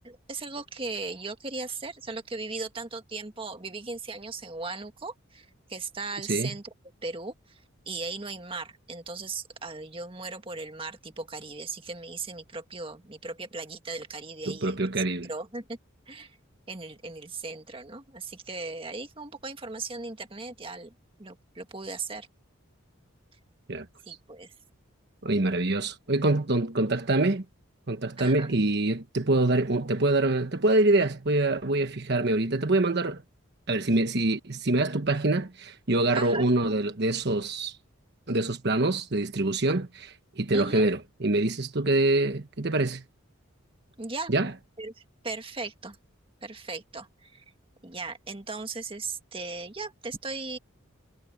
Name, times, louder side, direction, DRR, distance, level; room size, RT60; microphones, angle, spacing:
voice 1, 0.0-6.7 7.0-7.6 7.9-14.9 15.3-15.8 16.1-16.4 16.7-20.9 21.2-22.3 24.1-24.5 28.2-28.5 36.1-36.5 40.5-40.9 44.0-44.3 44.8-44.9 45.2-46.0 46.4-47.4 47.8-50.6, right 3 dB, 25° right, 1.8 m, -37 dB
voice 2, 14.5-15.3 23.7-24.2 25.2-27.4 27.9-33.2 33.7-37.8 38.3-43.0 44.3-44.5, right 2 dB, 50° right, 1.2 m, -25 dB
head